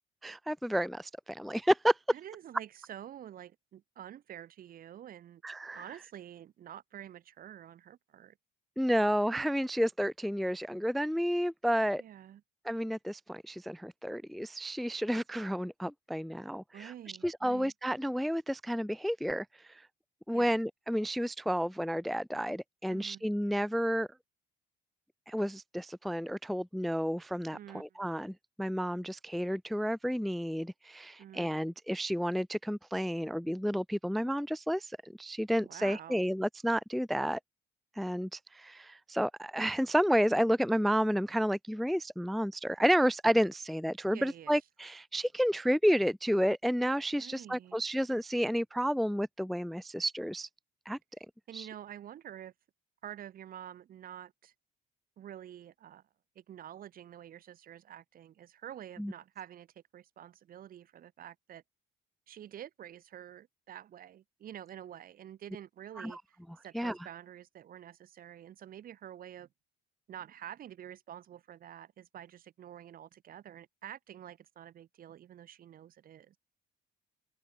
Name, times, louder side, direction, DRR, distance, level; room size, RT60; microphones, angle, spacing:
voice 1, 0.2-2.0 5.4-5.8 8.8-12.0 12.6-16.9 17.2-19.8 20.3-24.1 25.3-37.4 38.0-50.5 50.9-51.0 51.5-51.7 59.0-59.1 66.0-66.2 66.7-67.0, equal, ahead, 0.4 m, -31 dB
voice 2, 2.1-5.4 5.7-8.4 12.0-12.4 16.7-17.7 20.3-20.6 22.9-23.2 27.5-28.0 31.2-31.5 35.6-36.3 44.1-44.5 47.2-47.8 51.5-52.5 53.0-54.5 55.2-56.0 56.4-59.7 59.9-61.6 62.3-69.5 70.1-76.4, right 10 dB, 60° right, 7.0 m, -48 dB
open air
cardioid pair, 110°, 17 cm